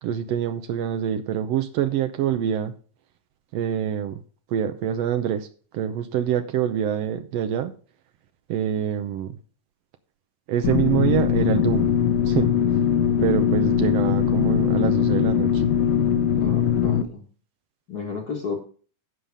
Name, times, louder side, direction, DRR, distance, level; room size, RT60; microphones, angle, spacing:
voice 1, 0.0-2.7 3.5-4.2 4.5-5.5 5.7-7.7 8.5-9.4 10.5-11.9 12.2-12.5 13.2-15.6, right 9 dB, 85° right, 7 dB, 1.4 m, -25 dB
sound 1, 10.6-17.0, left 8 dB, 70° left, 2.0 m, -21 dB
voice 2, 16.3-17.2 17.9-18.6, left 5 dB, 45° left, 2 dB, 1.4 m, -33 dB
16.5 x 5.7 x 3.4 m, 0.40 s
omnidirectional pair, 3.8 m